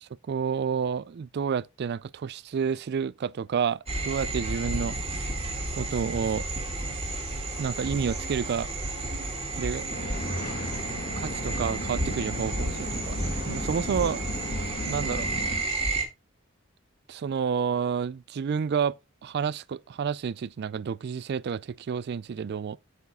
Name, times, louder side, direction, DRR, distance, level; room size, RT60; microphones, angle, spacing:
voice 1, 0.0-5.0 5.7-6.4 7.6-8.7 9.6-9.8 11.2-13.2 13.5-14.4 14.9-15.3 17.1-18.9 19.2-22.8, right 6 dB, 50° right, 0.3 m, -30 dB
sound 1, 3.9-16.0, right 2 dB, 30° right, 2.3 m, -32 dB
sound 2, 9.9-15.6, left 1 dB, 45° left, 2.4 m, -35 dB
8.0 x 7.2 x 3.6 m
head